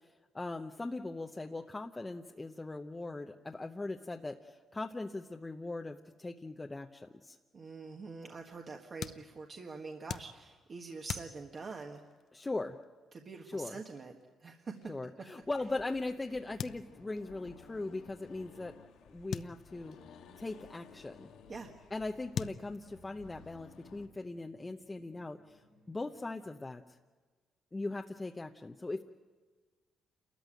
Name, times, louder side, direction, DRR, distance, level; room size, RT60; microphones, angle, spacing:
voice 1, 0.3-7.4 12.3-12.8 13.5-13.8 14.9-18.7 19.1-20.0 20.4-21.3 21.9-25.6 25.9-26.8 27.7-29.0, left 2 dB, 20° left, 3 dB, 0.8 m, -40 dB
voice 2, 7.5-12.0 13.1-14.1 14.4-14.7 21.5-21.7, right 4 dB, 40° right, 2 dB, 1.6 m, -45 dB
sound 1, 7.6-16.0 16.6-17.3 17.6-17.7 17.9-18.0 19.3-20.4 21.6-21.7 22.3-23.3, left 8 dB, 60° left, 0.7 m, -44 dB
Accelerating revving vroom, 15.4-24.1, left 6 dB, 85° left, 1.6 m, -57 dB
sound 2, 20.5-26.5, left 1 dB, 70° right, 7.3 m, -68 dB
28.5 x 14.0 x 9.2 m, 1.4 s
cardioid pair, 90°, 0 cm